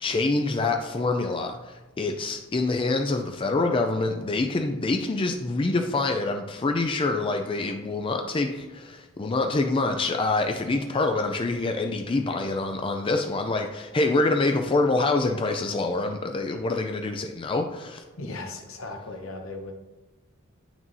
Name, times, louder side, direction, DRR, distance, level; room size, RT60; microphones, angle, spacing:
voice 1, 0.0-18.0, left 3 dB, 25° left, 4 dB, 0.4 m, -26 dB
voice 2, 18.2-19.7, left 2 dB, 70° left, 3 dB, 1.0 m, -37 dB
9.0 x 6.0 x 2.7 m, 1.2 s
head